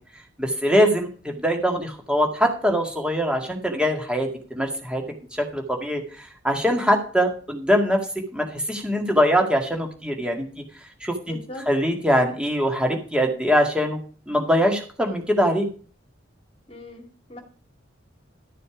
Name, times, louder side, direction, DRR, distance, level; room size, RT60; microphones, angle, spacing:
voice 1, 0.4-5.0 5.3-8.1 8.3-10.6 11.0-11.4 11.7-14.0 14.3-15.7, equal, 5° right, 3 dB, 1.9 m, -22 dB
voice 2, 11.2-11.7 16.7-17.4, left 1 dB, 30° left, 5 dB, 2.3 m, -40 dB
13.0 x 6.9 x 4.9 m, 0.42 s
head